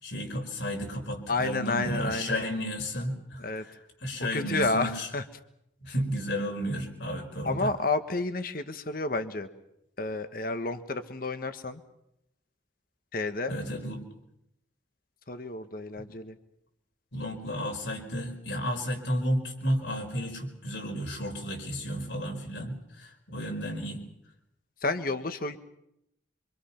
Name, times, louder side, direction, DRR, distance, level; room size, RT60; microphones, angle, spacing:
voice 1, 0.0-3.4 3.7-3.8 4.0-5.1 5.8-7.7 13.5-14.0 16.0-16.1 17.1-24.0, equal, 75° left, 2 dB, 5.1 m, -32 dB
voice 2, 1.3-2.4 3.4-3.6 4.2-5.2 7.4-9.5 10.0-11.8 13.1-13.5 15.3-16.4 24.8-25.6, left 3 dB, 50° left, 9 dB, 1.4 m, -30 dB
26.0 x 25.0 x 5.9 m, 0.81 s
head